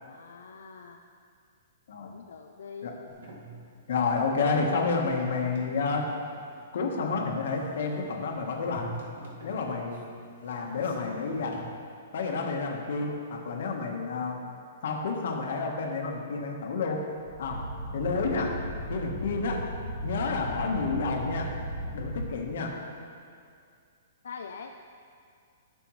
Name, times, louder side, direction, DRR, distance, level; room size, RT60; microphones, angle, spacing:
voice 1, 0.0-1.0 2.0-2.9 4.3-4.4 24.2-24.8, left 5 dB, 80° left, 4 dB, 0.5 m, -44 dB
sound 1, 3.1-11.6, right 2 dB, 85° right, 2.0 m, -47 dB
voice 2, 3.9-6.1 6.7-8.9 9.4-10.0 10.4-11.6 12.1-14.4 14.8-17.0 17.4-17.7 17.9-18.6 18.9-19.7 20.0-21.5 21.9-22.8, left 4 dB, 55° left, 1 dB, 1.3 m, -30 dB
sound 2, 17.1-22.2, right 1 dB, 65° right, 2.1 m, -36 dB
14.0 x 6.8 x 3.2 m, 2.3 s
hypercardioid pair, 175°, 0 cm